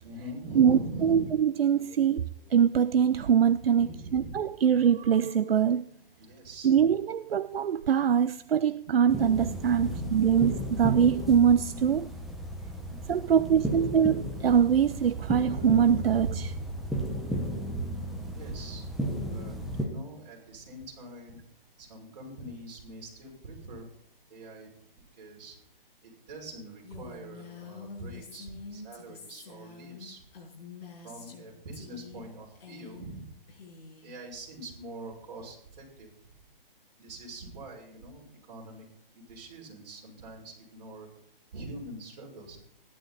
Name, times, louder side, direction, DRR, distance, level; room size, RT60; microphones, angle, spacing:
voice 1, 0.0-1.3 3.8-4.4 6.2-6.9 9.8-10.4 12.9-13.8 18.3-21.4 21.8-23.9 24.3-25.6 26.0-30.2 31.0-33.3 34.0-36.1 37.0-38.9 39.1-41.1 41.5-42.6, right 2 dB, 45° right, 6.3 m, -43 dB
voice 2, 0.5-5.9 6.6-12.1 13.1-16.6, right 8 dB, 80° right, 0.6 m, -23 dB
sound 1, 9.1-19.9, equal, ahead, 0.9 m, -34 dB
Female speech woman speaking, 26.8-31.4 31.7-32.3 32.5-33.2 33.5-34.1, left 5 dB, 45° left, 6.1 m, -46 dB
15.5 x 12.0 x 4.2 m
hypercardioid pair, 155°, 29 cm